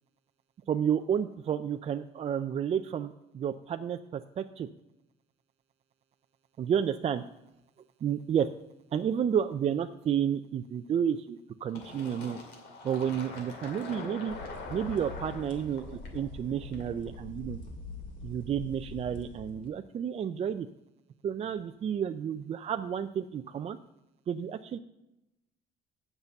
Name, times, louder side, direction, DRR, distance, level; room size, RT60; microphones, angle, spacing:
voice 1, 0.7-4.0 4.4-4.7 6.6-7.2 8.0-8.5 8.9-12.4 12.8-14.3 14.7-17.6 18.2-20.7 21.2-23.8 24.3-24.8, right 8 dB, 40° right, 8 dB, 0.4 m, -31 dB
Fill (with liquid), 11.8-17.2, left 3 dB, 80° left, 2.5 m, -44 dB
sound 1, 14.3-19.7, left 2 dB, 50° left, 2.3 m, -44 dB
8.0 x 6.8 x 7.0 m, 0.91 s
cardioid pair, 110°, 17 cm